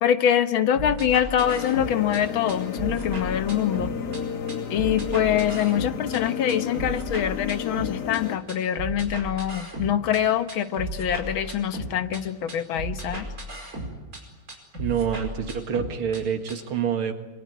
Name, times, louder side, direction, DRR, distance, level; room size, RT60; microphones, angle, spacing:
voice 1, 0.0-3.9 4.7-13.3, left 10 dB, 70° left, 11 dB, 1.8 m, -24 dB
sound 1, 0.7-2.2 2.5-4.2 4.5-6.2 6.5-8.2 8.5-10.2 10.5-12.2 12.5-14.2 14.5-16.2 16.5-16.6, right 2 dB, 40° right, 5.5 m, -35 dB
sound 2, 1.4-8.4, left 7 dB, 55° left, 1.6 m, -32 dB
voice 2, 14.8-17.1, right 7 dB, 75° right, 7 dB, 2.7 m, -27 dB
27.0 x 22.0 x 9.4 m, 1.2 s
omnidirectional pair, 2.4 m